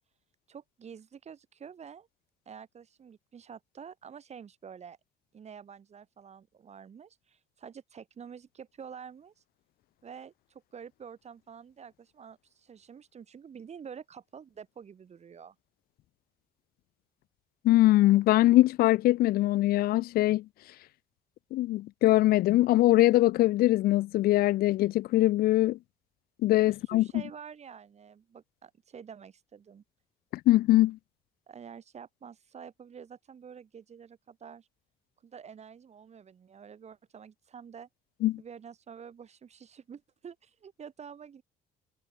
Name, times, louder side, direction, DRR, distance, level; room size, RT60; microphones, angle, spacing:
voice 1, 0.5-2.1 2.4-5.0 5.3-9.3 10.0-15.5 26.6-29.8 31.5-34.7 35.2-37.9 38.4-41.4, right 7 dB, 40° right, 5.2 m, -48 dB
voice 2, 17.6-20.4 21.5-25.8 26.4-27.1 30.5-31.0 38.2-38.4, left 16 dB, 65° left, 0.4 m, -22 dB
cardioid pair, 110°, 17 cm